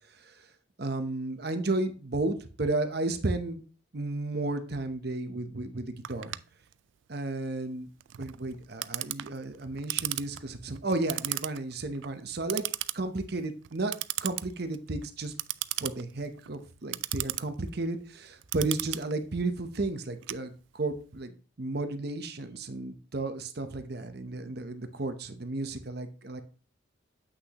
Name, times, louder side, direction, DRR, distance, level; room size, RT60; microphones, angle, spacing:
voice 1, 0.8-3.6 3.9-6.3 7.1-7.9 8.2-12.6 12.9-13.9 14.2-15.3 15.8-26.4, right 2 dB, 50° right, 9 dB, 0.8 m, -33 dB
Clock, 6.0-21.0, right 17 dB, 70° right, 0.3 m, -37 dB
8.2 x 6.0 x 2.9 m, 0.39 s
head